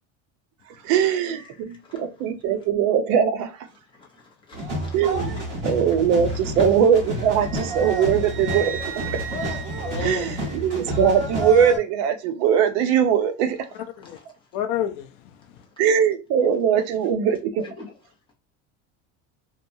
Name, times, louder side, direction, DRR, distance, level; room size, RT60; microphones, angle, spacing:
voice 1, 0.8-3.5 4.9-9.2 10.0-13.7 15.8-17.6, right 8 dB, 50° right, 0.5 m, -21 dB
voice 2, 1.4-2.1 3.8-5.0 5.3-5.7 10.5-10.6 14.0-14.5 15.7-15.8 17.6-17.9, left 3 dB, 15° left, 0.7 m, -47 dB
sound 1, 4.5-11.8, right 1 dB, 30° right, 1.4 m, -30 dB
Wind instrument woodwind instrument, 7.4-10.9, right 9 dB, 75° right, 0.8 m, -36 dB
voice 3, 9.8-10.3 14.0-14.2 14.5-15.1, left 10 dB, 55° left, 0.5 m, -28 dB
2.7 x 2.3 x 2.6 m
cardioid pair, 165°, 36 cm